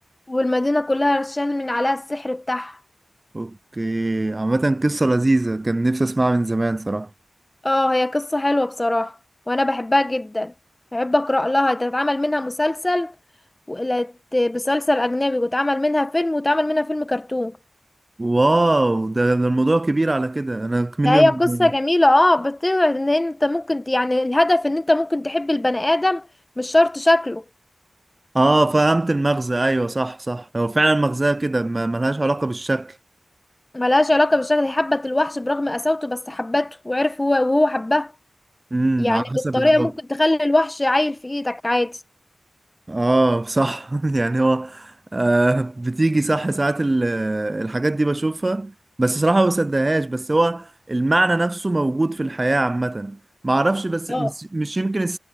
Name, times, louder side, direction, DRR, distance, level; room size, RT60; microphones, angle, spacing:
voice 1, 0.3-2.8 7.6-9.1 9.5-10.5 10.9-13.1 13.7-17.6 21.0-26.3 26.6-27.4 33.7-38.1 39.0-42.0 54.1-54.3, left 1 dB, 25° left, 1.1 m, -21 dB
voice 2, 3.3-7.1 18.2-21.7 28.3-33.0 38.7-39.9 42.9-55.2, right 2 dB, 30° right, 0.4 m, -21 dB
wide cardioid pair, 65°, 0 cm